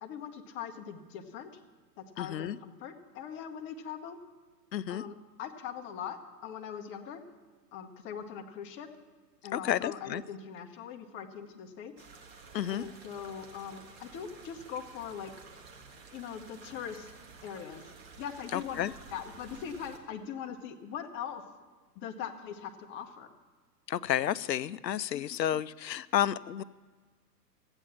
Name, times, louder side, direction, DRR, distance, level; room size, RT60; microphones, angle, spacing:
voice 1, 0.0-1.5 2.0-4.2 4.9-6.2 6.4-7.2 7.7-8.9 9.4-11.9 12.7-15.3 16.1-17.1 17.4-17.8 18.2-21.4 22.0-23.3 25.1-25.4, left 8 dB, 25° left, 5 dB, 1.0 m, -41 dB
voice 2, 2.2-2.6 4.7-5.0 9.5-10.2 12.5-12.9 18.5-18.9 23.9-26.6, left 11 dB, 80° left, 18 dB, 0.6 m, -31 dB
sound 1, 12.0-20.0, right 4 dB, 35° right, 1.7 m, -52 dB
14.0 x 8.9 x 7.1 m, 1.4 s
figure-of-eight pair, 115°, 50 cm